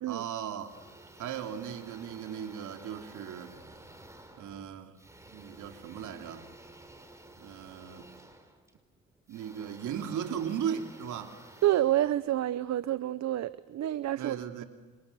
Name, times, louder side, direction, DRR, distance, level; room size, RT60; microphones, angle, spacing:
voice 1, 0.1-0.7 1.2-3.6 4.4-5.0 5.3-6.5 7.4-8.1 9.3-11.4 14.2-14.6, right 8 dB, 80° right, 3.2 m, -37 dB
sound 1, 0.6-12.8, right 1 dB, 10° right, 4.5 m, -53 dB
voice 2, 11.6-14.6, right 13 dB, 65° right, 0.8 m, -28 dB
29.5 x 27.5 x 7.0 m
cardioid pair, 90°, 30 cm